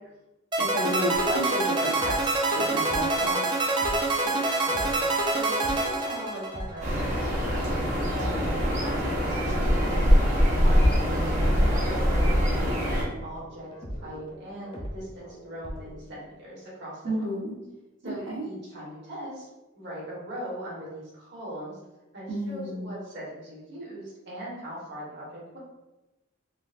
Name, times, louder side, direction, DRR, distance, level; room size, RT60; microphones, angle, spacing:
sound 1, 0.5-6.8, right 2 dB, 25° right, 0.4 m, -26 dB
voice 1, 0.6-3.4 17.0-17.6 18.0-18.4 22.3-22.9, equal, 75° right, -4 dB, 1.0 m, -31 dB
sound 2, 1.1-5.3 5.6-16.3, equal, 25° left, 0.6 m, -41 dB
voice 2, 4.2-10.2 10.6-12.9 13.2-17.0 18.0-19.4 19.7-21.8 22.1-25.6, right 1 dB, 60° right, -6 dB, 1.4 m, -40 dB
sound 3, 6.8-13.0, equal, 40° right, 1.0 m, -23 dB
3.8 x 2.5 x 2.5 m, 1.0 s
head